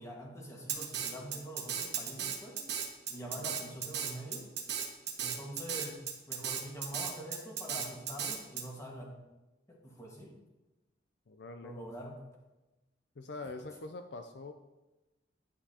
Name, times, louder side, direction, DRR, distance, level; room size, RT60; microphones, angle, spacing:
voice 1, 0.0-2.6 3.1-4.5 5.2-6.0 6.3-9.2 9.7-10.3 11.6-12.1, equal, 15° left, -1 dB, 1.6 m, -45 dB
Drum kit, 0.7-8.6, right 8 dB, 65° right, 1.2 m, -36 dB
voice 2, 3.3-3.6 11.3-11.7 13.2-14.5, left 3 dB, 65° left, 7 dB, 0.5 m, -44 dB
9.9 x 8.5 x 2.8 m, 1.1 s
head